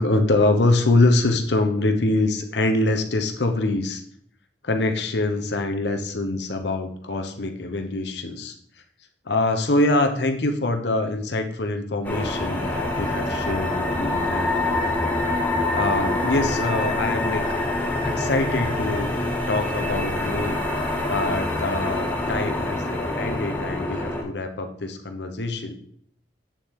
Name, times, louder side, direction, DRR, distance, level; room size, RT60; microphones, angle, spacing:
voice 1, 0.0-4.0 4.6-8.5 9.3-14.7 15.7-17.4 18.0-19.1 19.5-20.6 21.1-25.7, left 2 dB, 70° left, 6 dB, 0.9 m, -24 dB
sound 1, 12.0-24.2, left 2 dB, 10° left, 1.9 m, -25 dB
8.6 x 7.3 x 3.7 m, 0.64 s
head